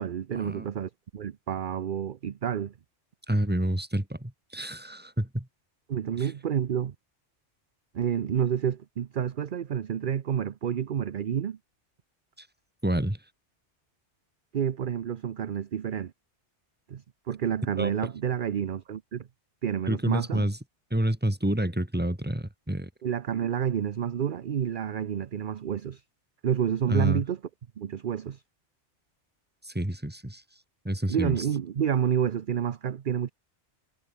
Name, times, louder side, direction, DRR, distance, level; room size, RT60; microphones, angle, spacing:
voice 1, 0.0-2.7 5.9-6.9 7.9-11.6 14.5-16.1 16.9-19.3 19.6-20.5 23.0-26.0 26.4-27.4 27.8-28.4 31.1-33.3, right 8 dB, 50° right, 0.8 m, -29 dB
voice 2, 3.3-5.5 6.2-6.3 12.4-12.5 12.8-13.2 17.8-17.9 19.9-20.6 20.9-22.9 26.9-27.2 29.6-30.4 30.8-31.4, right 1 dB, 10° right, 2.3 m, -28 dB
omnidirectional pair, 1.2 m